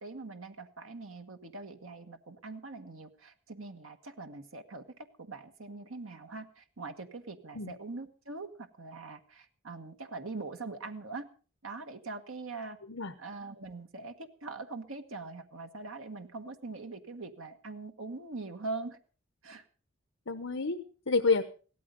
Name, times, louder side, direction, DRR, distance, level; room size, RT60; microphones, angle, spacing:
voice 1, 0.0-11.3 11.6-12.8 13.2-19.0 19.4-19.6, right 3 dB, 85° right, 6 dB, 1.5 m, -42 dB
voice 2, 20.3-21.4, left 4 dB, 75° left, 8 dB, 1.1 m, -29 dB
16.5 x 13.5 x 5.3 m, 0.38 s
head